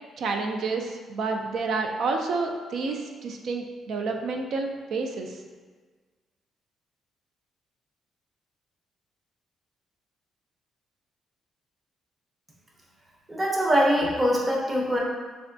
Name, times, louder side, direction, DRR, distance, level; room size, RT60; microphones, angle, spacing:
voice 1, 0.2-5.3, right 3 dB, 70° right, 3 dB, 0.3 m, -29 dB
voice 2, 13.3-15.0, equal, 20° right, -3 dB, 0.6 m, -23 dB
3.3 x 2.2 x 2.6 m, 1.4 s
cardioid pair, 90°, 0 cm